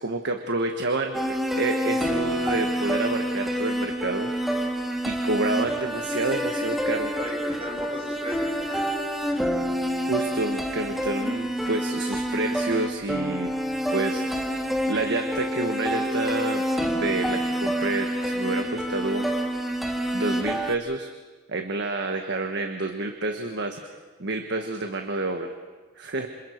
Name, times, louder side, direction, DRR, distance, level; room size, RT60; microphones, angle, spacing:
voice 1, 0.0-4.3 5.0-7.2 10.0-13.5 13.9-14.2 14.8-19.3 20.1-21.1 21.5-23.8 24.2-25.5 26.0-26.3, right 2 dB, 55° right, 4 dB, 1.4 m, -29 dB
sound 1, 1.1-20.8, equal, ahead, 1.7 m, -27 dB
voice 2, 7.2-9.1, right 1 dB, 30° right, -2 dB, 6.8 m, -37 dB
27.5 x 27.0 x 4.6 m, 1.3 s
head